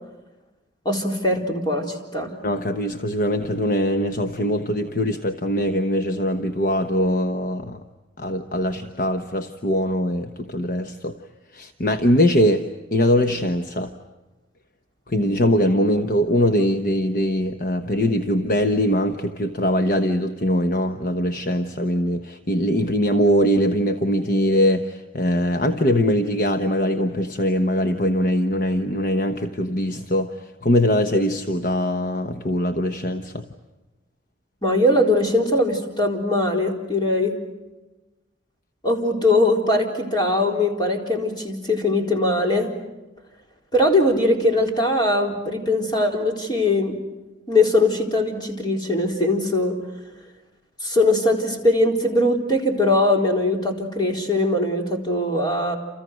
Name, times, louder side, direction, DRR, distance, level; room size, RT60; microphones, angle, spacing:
voice 1, 0.8-2.3 34.6-37.4 38.8-42.7 43.7-47.0 47.5-49.8 50.8-55.8, left 1 dB, 25° left, 1 dB, 4.1 m, -21 dB
voice 2, 2.4-7.8 8.2-11.2 11.5-12.6 12.9-13.9 15.1-30.3 30.6-33.4, equal, 45° left, 7 dB, 1.1 m, -22 dB
29.5 x 29.0 x 6.3 m, 1.1 s
head